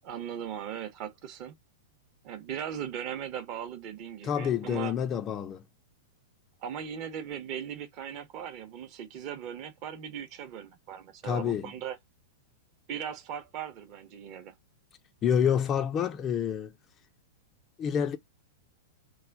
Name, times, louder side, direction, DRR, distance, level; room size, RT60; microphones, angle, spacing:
voice 1, 0.0-1.6 2.2-4.9 6.6-12.0 12.9-14.5, right 9 dB, 40° right, 0.7 m, -38 dB
voice 2, 4.2-5.6 11.2-11.7 15.2-16.7 17.8-18.2, left 8 dB, 25° left, 0.4 m, -28 dB
3.1 x 2.2 x 2.4 m
figure-of-eight pair, 100°, 0 cm